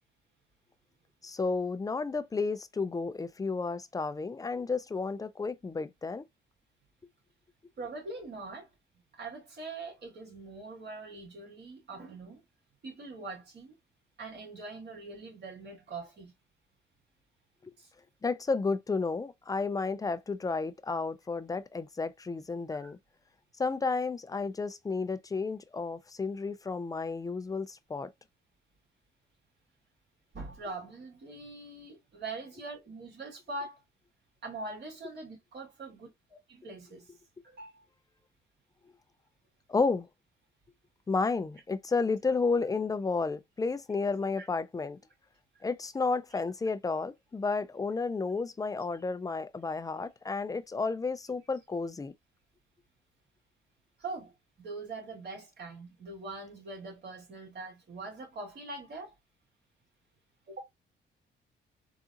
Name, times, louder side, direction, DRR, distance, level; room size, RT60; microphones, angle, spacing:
voice 1, 1.2-6.2 18.2-23.0 23.6-28.1 39.7-40.1 41.1-45.0 45.6-52.1, left 4 dB, 20° left, 0.4 m, -32 dB
voice 2, 7.8-8.7 9.2-12.4 12.8-13.8 14.2-16.3 17.8-17.9 22.7-22.9 30.3-33.8 34.4-37.1 37.4-37.8 44.3-44.5 54.0-54.3 54.6-59.1 60.5-60.6, right 3 dB, 55° right, 2.2 m, -43 dB
3.7 x 2.4 x 2.8 m
cardioid pair, 90°, 20 cm